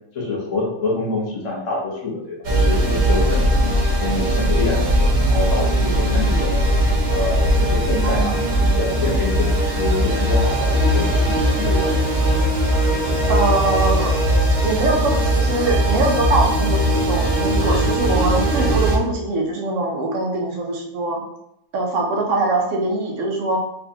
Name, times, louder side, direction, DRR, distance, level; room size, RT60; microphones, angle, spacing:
voice 1, 0.0-3.6 4.0-6.6 7.1-12.0, left 3 dB, 70° left, -3 dB, 1.4 m, -26 dB
sound 1, 2.4-19.0, equal, 55° right, 0.5 m, -19 dB
voice 2, 7.9-8.4 13.3-14.1 14.6-21.2 21.7-23.6, right 2 dB, 75° right, 0 dB, 1.1 m, -22 dB
3.2 x 2.9 x 2.8 m, 0.80 s
omnidirectional pair, 1.3 m